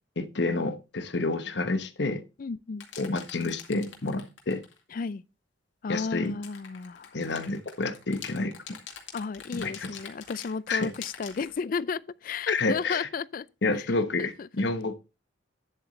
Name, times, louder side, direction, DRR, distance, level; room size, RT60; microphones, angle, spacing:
voice 1, 0.2-2.2 3.0-4.6 5.9-6.4 7.1-8.5 9.5-9.9 10.7-10.9 12.5-13.1 13.6-15.0, left 3 dB, 65° left, 1.0 m, -29 dB
voice 2, 2.4-2.9 4.9-5.2 5.8-7.2 9.1-13.5 13.7-14.7, left 5 dB, 45° left, 0.4 m, -33 dB
sound 1, 2.8-4.8 6.2-11.6, left 7 dB, 80° left, 2.2 m, -45 dB
10.0 x 7.8 x 3.2 m
head